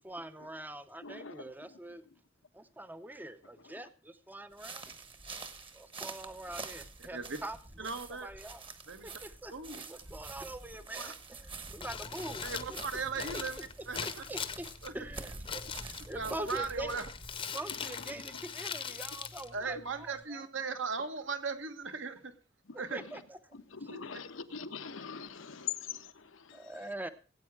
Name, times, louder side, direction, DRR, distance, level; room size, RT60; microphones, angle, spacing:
voice 1, 0.0-2.0 2.5-4.8 5.7-7.6 7.8-7.9 8.2-8.6 9.0-9.5 9.9-12.8 13.3-13.4 14.1-14.7 14.9-16.9 17.5-20.5 22.9-23.4 23.8-23.9 26.5-27.1, right 1 dB, 10° right, 0.6 m, -44 dB
voice 2, 1.0-1.4 1.7-1.8 17.8-17.9 23.5-26.8, left 7 dB, 90° left, 1.1 m, -42 dB
sound 1, 4.5-17.4, right 3 dB, 25° right, 1.1 m, -47 dB
voice 3, 7.8-8.3 8.9-9.2 9.5-9.8 10.9-11.1 12.4-13.6 13.9-14.2 14.8-14.9 16.1-17.1 19.5-22.3 22.8-23.0 23.9-24.0, right 4 dB, 70° right, 1.3 m, -38 dB
Crumpling crinkling, 11.7-20.2, left 6 dB, 25° left, 0.8 m, -42 dB
17.5 x 8.5 x 4.7 m
head